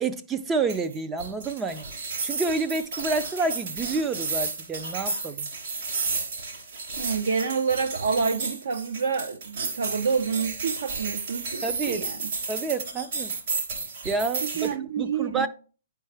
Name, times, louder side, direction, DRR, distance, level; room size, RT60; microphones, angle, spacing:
voice 1, 0.0-5.5 11.6-12.0 12.5-13.3 14.0-14.7 15.0-15.5, right 4 dB, 10° right, 0.3 m, -29 dB
sound 1, 0.7-14.7, right 4 dB, 55° right, 3.2 m, -32 dB
voice 2, 7.0-12.3 14.4-15.5, right 5 dB, 75° right, 0.6 m, -28 dB
9.7 x 4.5 x 3.3 m
hypercardioid pair, 165°, 0 cm